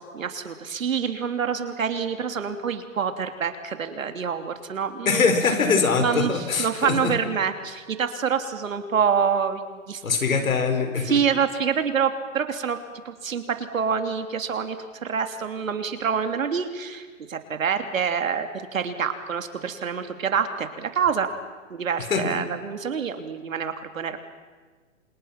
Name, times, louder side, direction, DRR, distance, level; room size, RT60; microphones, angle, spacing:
voice 1, 0.0-5.3 6.0-10.0 11.0-12.8 13.0-21.3 21.7-24.2, right 7 dB, 75° right, 7 dB, 3.2 m, -26 dB
voice 2, 5.1-7.1 10.0-11.2 22.0-22.3, left 5 dB, 90° left, 7 dB, 5.3 m, -23 dB
29.5 x 27.0 x 6.0 m, 1.4 s
hypercardioid pair, 175°, 40 cm